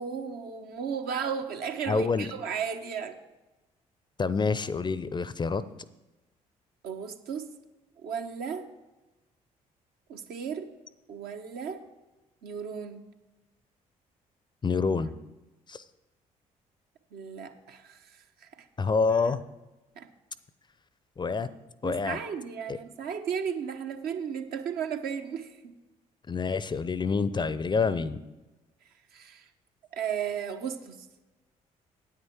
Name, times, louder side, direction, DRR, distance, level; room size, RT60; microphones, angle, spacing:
voice 1, 0.0-3.2 6.8-7.5 8.0-8.7 10.1-10.8 11.1-11.9 12.4-13.0 17.1-18.7 20.0-20.1 21.8-25.7 28.8-29.5 29.9-31.1, right 7 dB, 60° right, 6 dB, 1.0 m, -35 dB
voice 2, 1.9-2.3 4.2-5.6 14.6-15.1 15.7-15.8 18.8-19.4 21.2-21.5 21.8-22.2 22.7-22.8 26.3-28.2, left 4 dB, 25° left, 16 dB, 0.5 m, -27 dB
9.6 x 8.9 x 4.6 m, 1.1 s
figure-of-eight pair, 45°, 18 cm